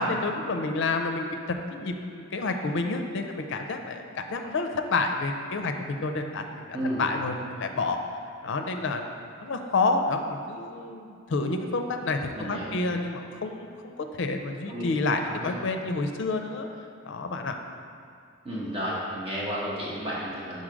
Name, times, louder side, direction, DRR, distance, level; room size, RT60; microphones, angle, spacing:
voice 1, 0.0-1.4 1.7-6.7 7.0-8.0 8.4-9.0 9.4-16.7 17.0-17.6, left 3 dB, 60° left, 5 dB, 0.5 m, -29 dB
voice 2, 6.7-7.1 12.3-12.8 14.7-14.8 15.2-15.5 18.4-20.6, equal, 30° right, -7 dB, 1.1 m, -32 dB
6.1 x 4.0 x 5.1 m, 2.5 s
head